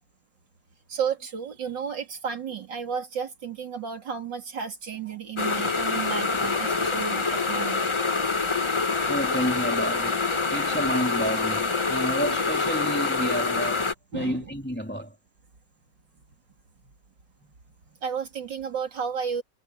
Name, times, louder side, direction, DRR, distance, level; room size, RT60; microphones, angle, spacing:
voice 1, 0.9-7.9 14.1-14.5 16.8-16.9 17.9-19.4, right 7 dB, 80° right, 3.4 m, -33 dB
sound 1, 5.4-13.9, left 4 dB, 25° left, 0.6 m, -26 dB
voice 2, 9.0-15.1, equal, 5° left, 2.6 m, -30 dB
omnidirectional pair, 1.9 m